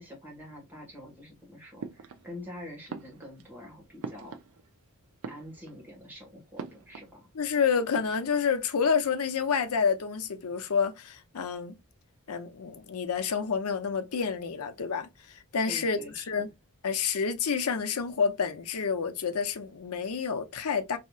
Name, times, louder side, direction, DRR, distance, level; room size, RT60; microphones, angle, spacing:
voice 1, 0.0-4.3 5.3-7.3 15.6-16.3, left 1 dB, 10° right, 1.6 m, -46 dB
sound 1, 1.8-2.5 2.9-4.8 5.1-6.0 6.6-7.2 7.4-7.5 7.8-8.5, right 5 dB, 70° right, 0.5 m, -43 dB
voice 2, 7.3-11.8 12.3-16.5 16.8-21.0, left 6 dB, 85° left, 0.6 m, -29 dB
4.1 x 2.8 x 2.4 m
head